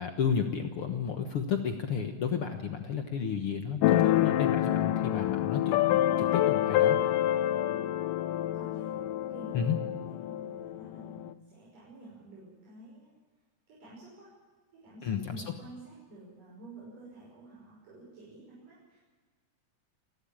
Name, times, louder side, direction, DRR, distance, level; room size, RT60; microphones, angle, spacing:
voice 1, 0.0-7.0 9.5-9.8 15.0-15.4, left 7 dB, 55° left, 5 dB, 1.8 m, -32 dB
Keyboard (musical), 3.8-11.3, left 13 dB, 90° left, 2.4 m, -27 dB
voice 2, 8.5-9.0 9.3-13.1 13.7-14.3 14.7-19.0, right 2 dB, 90° right, -6 dB, 7.6 m, -50 dB
28.5 x 12.5 x 8.8 m, 1.4 s
omnidirectional pair, 3.6 m